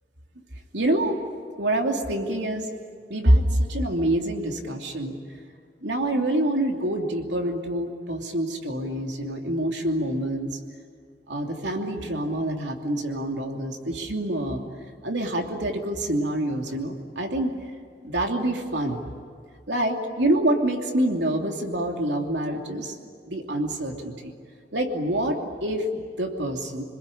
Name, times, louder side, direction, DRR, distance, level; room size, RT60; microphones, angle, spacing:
voice 1, 0.7-1.2 1.6-2.7 3.1-5.2 5.8-10.6 11.3-14.6 15.0-17.5 18.0-19.0 19.7-23.0 23.2-24.3 24.7-26.8, right 1 dB, 85° right, 2 dB, 2.9 m, -26 dB
28.0 x 21.0 x 10.0 m, 2.1 s
head